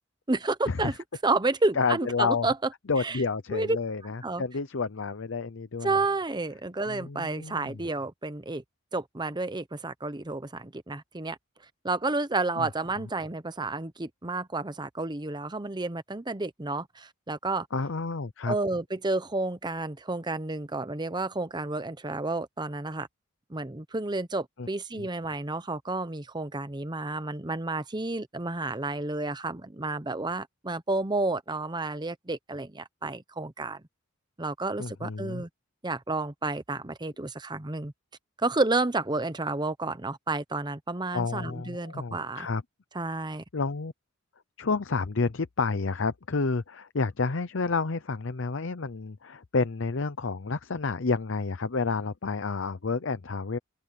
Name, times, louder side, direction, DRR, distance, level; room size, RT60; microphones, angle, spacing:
voice 1, 0.3-1.0 1.2-2.6 3.0-3.2 3.5-3.8 4.2-4.4 5.8-8.6 8.9-11.4 11.8-17.7 18.5-23.1 23.5-33.8 34.4-35.5 35.8-37.9 38.4-42.5 42.9-43.4, right 2 dB, 20° right, 0.9 m, -30 dB
voice 2, 1.8-2.5 2.9-6.0 6.9-7.8 12.6-12.7 17.7-18.5 24.6-24.7 25.0-25.1 34.8-35.4 41.1-42.6 43.5-43.9 44.6-53.6, left 4 dB, 65° left, 0.7 m, -30 dB
open air
head